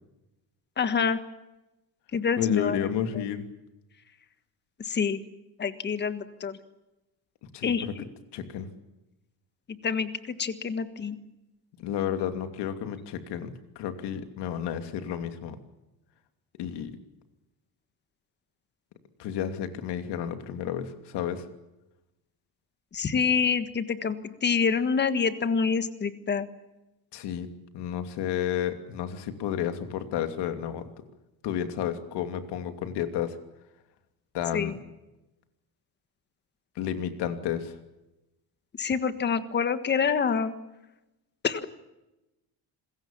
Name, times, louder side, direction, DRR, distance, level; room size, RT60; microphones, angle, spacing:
voice 1, 0.8-1.2 2.1-3.2 4.8-5.2 5.6-6.6 7.6-8.0 9.8-11.2 22.9-26.5 34.5-34.7 38.8-40.5 41.4-41.6, left 6 dB, 25° left, 11 dB, 1.5 m, -27 dB
voice 2, 2.4-3.4 7.5-7.9 8.3-8.7 11.8-15.6 16.6-17.0 19.2-21.4 27.1-30.9 31.4-33.4 34.3-34.7 36.8-37.7, left 9 dB, 75° left, 8 dB, 2.9 m, -31 dB
27.0 x 21.5 x 7.3 m, 0.97 s
cardioid pair, 180°, 41 cm